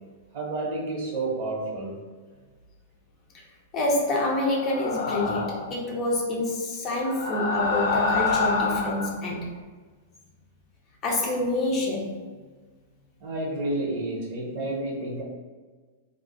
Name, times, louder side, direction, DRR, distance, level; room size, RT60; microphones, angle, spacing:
voice 1, 0.3-2.1 12.1-12.2 13.2-15.2, right 2 dB, 45° right, -2 dB, 0.9 m, -30 dB
voice 2, 3.7-9.5 11.0-12.2, left 2 dB, 25° left, -2 dB, 0.6 m, -27 dB
sound 1, 4.6-5.7 7.0-9.2, left 4 dB, 85° left, 0.5 m, -27 dB
2.5 x 2.4 x 3.7 m, 1.4 s
supercardioid pair, 160°, 0 cm